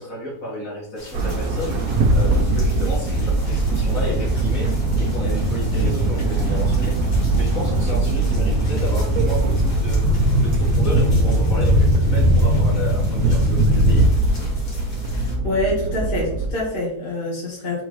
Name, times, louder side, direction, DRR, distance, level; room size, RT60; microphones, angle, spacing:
voice 1, 0.0-1.8 2.1-4.7 5.0-7.0 7.3-10.0 10.4-14.1, left 1 dB, 60° left, -6 dB, 2.4 m, -31 dB
sound 1, 1.0-15.4, left 1 dB, 80° left, 2.3 m, -40 dB
sound 2, 1.1-16.5, right 2 dB, 80° right, 1.2 m, -22 dB
sound 3, 3.4-14.1, equal, 50° right, 1.2 m, -21 dB
voice 2, 15.0-17.8, left 1 dB, 40° left, -7 dB, 1.6 m, -26 dB
4.5 x 3.7 x 3.1 m, 0.74 s
omnidirectional pair, 1.7 m